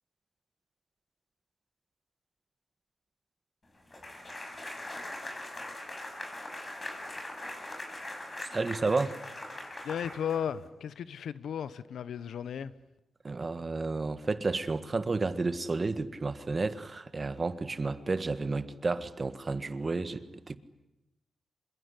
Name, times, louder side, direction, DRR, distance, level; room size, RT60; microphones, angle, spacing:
sound 1, 3.9-10.7, left 1 dB, 35° left, 7.2 m, -41 dB
voice 1, 8.4-9.2 13.2-20.6, right 3 dB, 40° right, 1.6 m, -31 dB
voice 2, 9.8-12.7, left 8 dB, 85° left, 1.0 m, -35 dB
25.5 x 22.0 x 9.8 m
cardioid pair, 60°, 0 cm